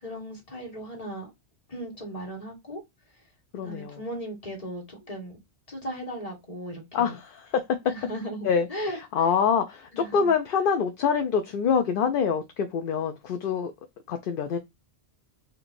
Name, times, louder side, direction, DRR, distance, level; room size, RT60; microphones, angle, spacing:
voice 1, 0.0-1.3 1.7-2.8 3.6-5.4 5.7-7.2 7.8-9.0 9.9-10.3, equal, 35° left, 1.7 m, -37 dB
voice 2, 3.5-4.0 6.9-7.8 8.4-13.7 14.1-14.6, left 6 dB, 60° left, 0.7 m, -25 dB
4.4 x 2.6 x 2.5 m
omnidirectional pair, 1.1 m